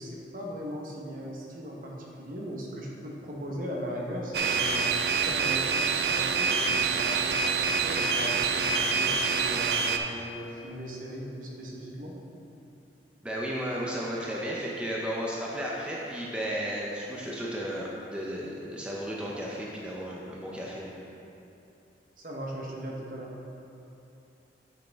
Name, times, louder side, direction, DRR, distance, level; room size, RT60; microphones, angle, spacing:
voice 1, 0.0-12.2 22.2-23.3, equal, 50° right, -2 dB, 1.0 m, -38 dB
sound 1, 4.3-10.0, right 5 dB, 65° right, 0.4 m, -26 dB
voice 2, 13.2-20.9, equal, 5° right, -4 dB, 0.6 m, -34 dB
8.0 x 6.5 x 3.5 m, 2.8 s
head